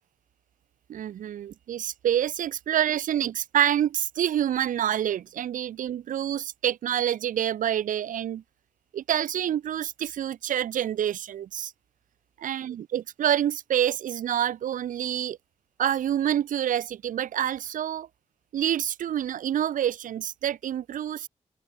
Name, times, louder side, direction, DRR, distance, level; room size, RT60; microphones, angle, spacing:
voice 1, 0.9-8.4 8.9-11.7 12.4-15.4 15.8-18.1 18.5-21.3, right 10 dB, 85° right, 0.9 m, -27 dB
open air
supercardioid pair, 45°, 13 cm